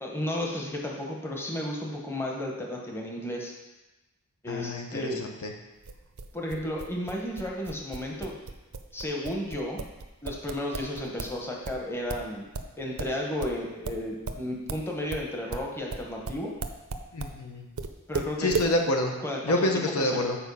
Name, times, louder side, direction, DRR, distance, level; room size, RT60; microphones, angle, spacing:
voice 1, 0.0-3.5 4.4-5.2 6.3-8.3 8.9-9.8 10.2-12.4 12.8-16.5 18.1-18.5 19.2-20.2, left 1 dB, 10° left, -1 dB, 0.9 m, -33 dB
voice 2, 4.5-5.5 17.1-17.7 18.4-19.1 19.4-20.4, left 1 dB, 75° left, 3 dB, 0.9 m, -27 dB
sound 1, 5.8-11.4 11.6-17.4 17.8-18.7, right 4 dB, 75° right, 0.6 m, -35 dB
7.0 x 4.5 x 5.4 m, 1.1 s
head